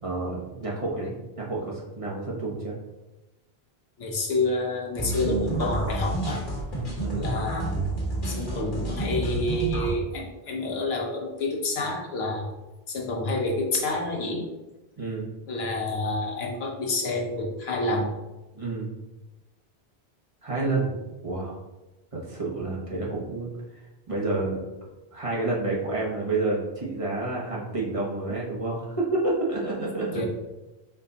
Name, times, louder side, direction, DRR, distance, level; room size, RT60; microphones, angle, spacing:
voice 1, 0.0-1.1 1.4-2.7 7.0-7.3 15.0-15.3 18.5-18.9 20.4-20.9 21.2-21.6 22.3-23.5 24.1-24.6 25.1-30.3, right 2 dB, 35° right, -4 dB, 0.8 m, -29 dB
voice 2, 4.0-6.4 7.1-7.8 8.2-12.5 12.9-14.5 15.5-18.1 28.3-28.6 30.1-30.3, left 2 dB, 75° left, 0 dB, 1.0 m, -28 dB
sound 1, 4.9-9.9, right 2 dB, 50° left, 1.3 m, -29 dB
4.4 x 2.2 x 3.8 m, 1.1 s
omnidirectional pair, 1.1 m